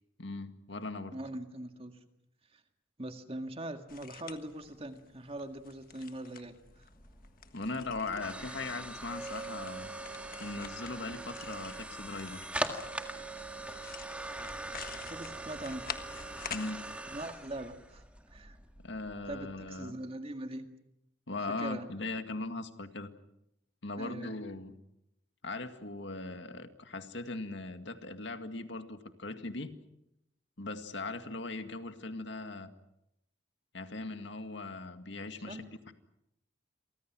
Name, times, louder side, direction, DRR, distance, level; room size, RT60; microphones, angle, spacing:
voice 1, 0.2-1.2 7.5-9.9 10.4-12.5 16.5-16.9 18.8-20.0 21.3-23.1 23.8-24.7 25.4-29.7 30.6-32.7 33.7-35.9, left 2 dB, 65° left, 8 dB, 2.0 m, -39 dB
voice 2, 1.1-2.0 2.5-2.6 3.0-6.9 15.1-15.9 17.1-18.0 18.3-18.6 19.3-20.7 21.6-21.9 24.0-24.4 35.5-35.7, right 1 dB, 30° right, 6 dB, 2.0 m, -42 dB
sound 1, 3.9-16.7, left 7 dB, 45° left, 1.5 m, -48 dB
sound 2, 6.6-19.7, right 2 dB, 5° right, 1.9 m, -42 dB
29.5 x 24.0 x 6.2 m, 0.84 s
head